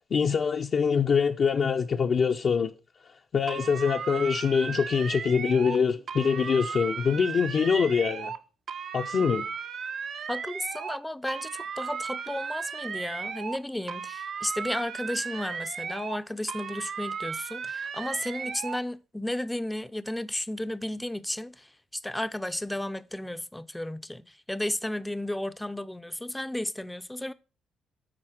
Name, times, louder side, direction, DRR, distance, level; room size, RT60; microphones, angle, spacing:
voice 1, 0.1-2.7 3.3-8.3 8.9-9.5, left 6 dB, 50° left, 0.6 m, -24 dB
sound 1, 3.5-5.8 6.1-8.4 8.7-11.0 11.3-13.6 13.9-16.2 16.5-18.8, right 6 dB, 55° right, 0.7 m, -35 dB
voice 2, 10.3-27.3, left 1 dB, 5° left, 0.6 m, -33 dB
9.9 x 4.2 x 6.4 m
cardioid pair, 85°, 0 cm